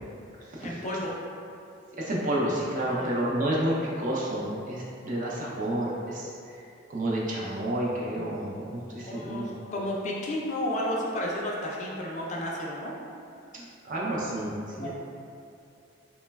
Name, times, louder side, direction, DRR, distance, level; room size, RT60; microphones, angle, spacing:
voice 1, 0.6-1.1 2.8-3.1 8.2-8.6 9.0-12.9 14.8-14.9, left 1 dB, 40° left, -3 dB, 0.3 m, -32 dB
voice 2, 1.9-6.6 6.9-9.6 13.5-14.9, right 1 dB, 40° right, -5 dB, 0.4 m, -30 dB
3.1 x 2.1 x 2.2 m, 2.5 s
head